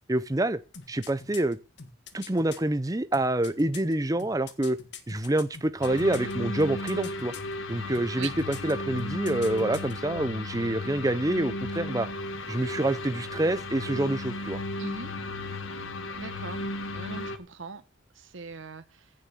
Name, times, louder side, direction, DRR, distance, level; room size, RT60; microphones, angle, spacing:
voice 1, 0.1-0.6 0.9-1.6 2.1-4.8 5.1-7.3 7.7-12.1 12.5-14.6, right 1 dB, 15° right, 0.6 m, -27 dB
sound 1, 0.7-2.6 3.1-6.3 6.6-7.5 7.9-8.7 9.0-9.9 10.2-10.3, left 6 dB, 55° left, 1.8 m, -44 dB
sound 2, 5.8-17.4, left 2 dB, 85° left, 1.4 m, -35 dB
voice 2, 14.8-15.1 16.2-16.7 16.9-17.8 18.1-19.1, right 4 dB, 75° right, 1.1 m, -40 dB
15.5 x 6.6 x 7.6 m
head